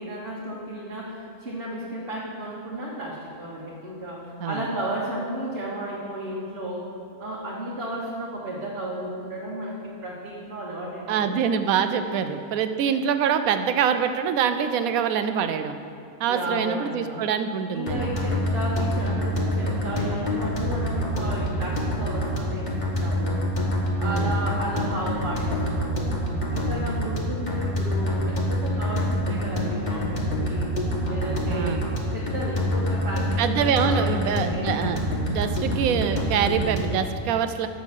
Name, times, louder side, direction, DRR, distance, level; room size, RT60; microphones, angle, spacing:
voice 1, 0.0-6.9 7.2-11.3 11.9-12.2 16.3-17.2 17.7-23.4 24.0-26.1 26.5-30.7 31.1-31.8 32.1-34.8, right 1 dB, 40° right, -6 dB, 1.3 m, -33 dB
voice 2, 11.1-15.8 16.2-18.1 24.0-24.4 31.5-31.8 33.4-35.0 35.3-37.7, right 7 dB, 75° right, 9 dB, 1.0 m, -25 dB
sound 1, 17.9-37.1, equal, 35° left, 1.2 m, -26 dB
6.2 x 6.2 x 7.3 m, 2.7 s
omnidirectional pair, 1.5 m